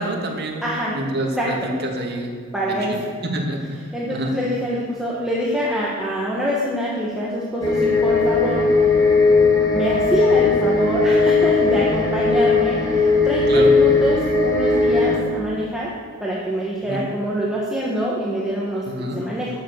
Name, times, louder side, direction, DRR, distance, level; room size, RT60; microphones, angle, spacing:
voice 1, 0.0-0.7 0.9-1.6 1.8-2.3 2.7-3.0 3.3-4.4 13.5-13.7 16.8-17.0 18.9-19.2, right 1 dB, 50° right, 0 dB, 2.3 m, -27 dB
voice 2, 0.6-1.0 1.4-1.7 2.5-3.1 3.9-8.7 9.7-15.9 16.2-18.8 19.1-19.5, equal, 5° right, -7 dB, 1.9 m, -25 dB
sound 1, 7.6-15.2, left 3 dB, 15° left, 2.4 m, -17 dB
13.0 x 10.5 x 6.8 m, 2.1 s
head